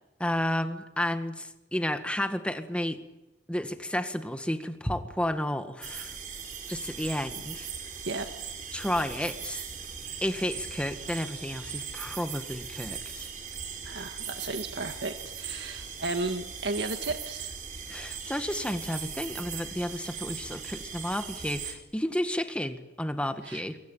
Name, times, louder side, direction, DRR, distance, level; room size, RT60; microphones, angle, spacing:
voice 1, 0.2-3.0 3.5-6.1 6.7-7.7 8.7-9.7 10.2-13.3 17.9-23.8, left 1 dB, 5° left, 8 dB, 1.9 m, -32 dB
sound 1, 5.8-21.7, right 7 dB, 45° right, 5.0 m, -39 dB
voice 2, 13.8-17.5 23.4-23.6, right 3 dB, 75° right, 6 dB, 1.8 m, -34 dB
27.5 x 23.5 x 9.2 m, 0.92 s
head